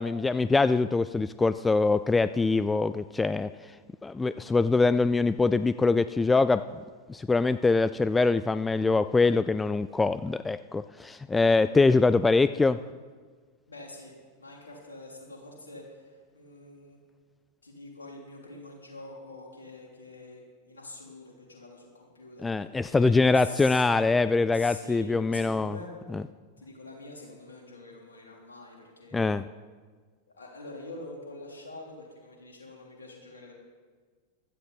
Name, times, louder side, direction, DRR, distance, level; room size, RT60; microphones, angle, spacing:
voice 1, 0.0-3.5 4.0-6.6 7.1-12.8 22.4-25.7 29.1-29.4, left 3 dB, 10° left, 14 dB, 0.3 m, -23 dB
voice 2, 13.7-17.2 17.6-23.9 24.5-25.9 26.6-29.3 30.3-33.5, left 2 dB, 75° left, -1 dB, 3.5 m, -45 dB
16.0 x 12.5 x 4.2 m, 1.5 s
figure-of-eight pair, 90°, 0 cm